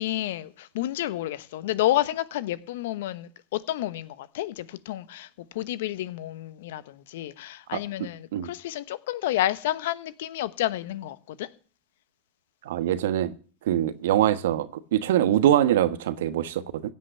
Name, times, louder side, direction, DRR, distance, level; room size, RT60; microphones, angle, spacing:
voice 1, 0.0-11.5, left 14 dB, 70° left, 1.0 m, -30 dB
voice 2, 12.6-13.3 13.6-16.8, right 11 dB, 75° right, 1.2 m, -23 dB
16.0 x 5.6 x 8.8 m
hypercardioid pair, 100°, 0 cm